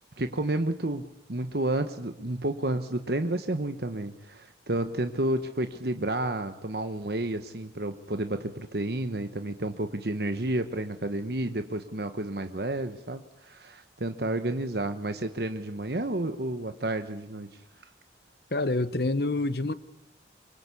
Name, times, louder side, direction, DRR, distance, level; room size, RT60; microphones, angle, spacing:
voice 1, 0.2-17.5, right 1 dB, 60° right, 1.2 m, -31 dB
voice 2, 18.5-19.7, left 2 dB, 60° left, 0.9 m, -27 dB
24.5 x 24.5 x 8.4 m
head